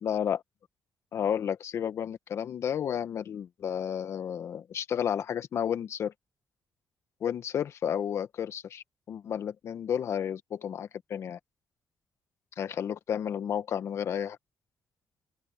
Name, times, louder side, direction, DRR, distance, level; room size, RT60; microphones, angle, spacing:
voice 1, 0.0-0.4 1.1-6.1 7.2-11.4 12.6-14.4, left 8 dB, 65° left, 1.5 m, -32 dB
open air
cardioid pair, 90°, 5 cm